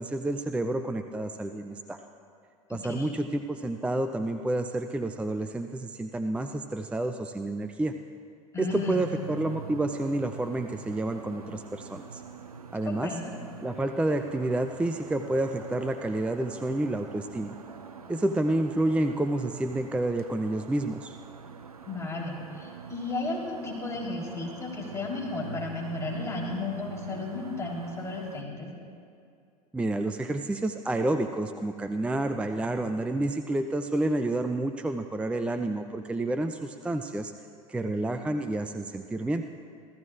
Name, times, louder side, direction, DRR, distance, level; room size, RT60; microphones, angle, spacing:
voice 1, 0.0-2.0 2.7-7.9 8.6-12.2 12.7-13.1 13.6-17.6 18.1-21.2 29.7-37.3 37.7-39.4, right 2 dB, 5° right, 8 dB, 0.4 m, -29 dB
voice 2, 8.5-9.0 12.9-13.3 21.9-28.7, left 3 dB, 15° left, -2 dB, 3.6 m, -34 dB
sound 1, 8.7-28.4, right 5 dB, 85° right, 0.6 m, -45 dB
26.5 x 14.5 x 2.4 m, 2.4 s
figure-of-eight pair, 80°, 19 cm